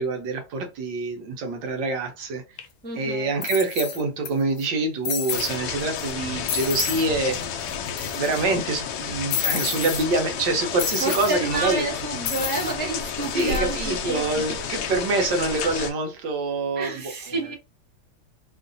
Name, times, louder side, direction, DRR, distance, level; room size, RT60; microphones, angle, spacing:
voice 1, 0.0-2.4 2.9-7.7 8.0-11.8 13.3-16.9, right 3 dB, 70° right, 1.4 m, -26 dB
sound 1, 2.6-2.7 3.4-4.3 4.6-4.7 5.1-5.6 6.0-6.1 6.5-7.1 7.4-7.5 7.7-8.4 9.3-10.0 10.8-11.4 12.3-12.7 13.2-13.6, left 8 dB, 85° left, 1.5 m, -29 dB
voice 2, 2.8-3.4 11.0-14.8 16.7-17.5, right 2 dB, 10° left, 0.5 m, -30 dB
sound 2, 5.3-15.9, left 7 dB, 70° left, 1.2 m, -31 dB
3.6 x 2.5 x 2.5 m
omnidirectional pair, 2.2 m